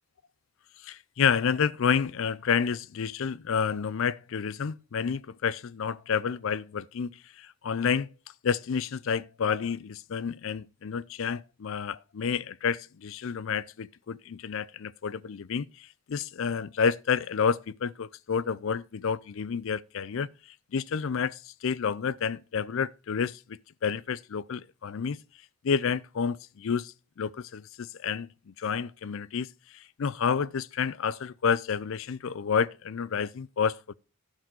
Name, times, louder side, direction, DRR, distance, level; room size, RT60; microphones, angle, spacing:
voice 1, 0.8-7.1 7.4-8.1 8.4-20.3 20.7-25.2 25.6-29.5 29.7-33.9, left 6 dB, 65° left, 0.4 m, -30 dB
11.5 x 4.8 x 6.1 m
head